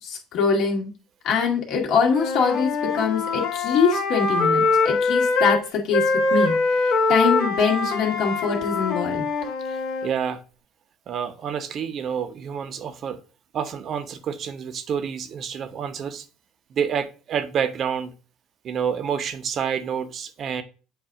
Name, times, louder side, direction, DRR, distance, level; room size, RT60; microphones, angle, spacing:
voice 1, 0.0-0.9 1.2-9.2, left 5 dB, 55° left, 2.1 m, -23 dB
Wind instrument woodwind instrument, 2.1-5.6 5.9-10.1, left 3 dB, 80° left, 2.1 m, -23 dB
voice 2, 9.6-10.4 11.1-13.2 13.5-16.3 16.7-18.1 18.6-20.6, right 7 dB, 45° right, 0.8 m, -28 dB
7.8 x 2.7 x 4.7 m
cardioid pair, 125°, 0 cm